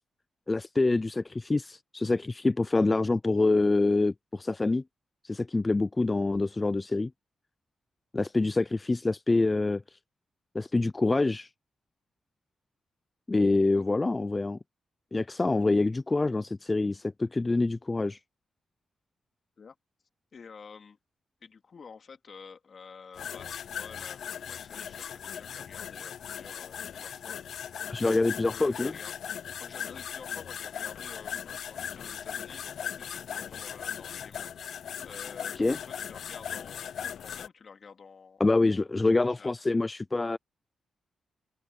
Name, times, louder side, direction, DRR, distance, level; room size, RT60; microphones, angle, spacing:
voice 1, 0.5-4.8 5.2-7.1 8.1-10.0 10.5-11.5 13.3-14.6 15.1-18.2 27.9-28.9 35.6-35.8 38.4-40.4, left 3 dB, 25° left, 0.4 m, -26 dB
voice 2, 20.3-21.0 21.4-27.7 28.3-29.1 29.6-34.5 35.0-39.5, left 5 dB, 55° left, 2.5 m, -50 dB
sound 1, 23.1-37.5, left 8 dB, 75° left, 0.5 m, -38 dB
cardioid pair, 85°, 0 cm